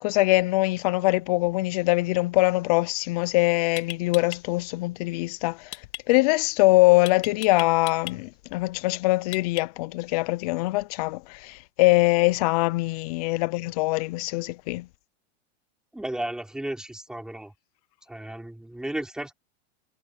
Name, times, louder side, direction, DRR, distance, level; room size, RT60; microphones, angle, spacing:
voice 1, 0.0-5.7 6.1-14.9, left 22 dB, 35° left, 0.5 m, -23 dB
sound 1, 3.1-3.3 3.8-4.4 5.7-6.0 7.1-8.2 9.3-9.9, left 16 dB, 90° left, 2.2 m, -36 dB
voice 2, 15.9-17.5 18.1-19.3, right 1 dB, ahead, 4.4 m, -34 dB
supercardioid pair, 175°, 33 cm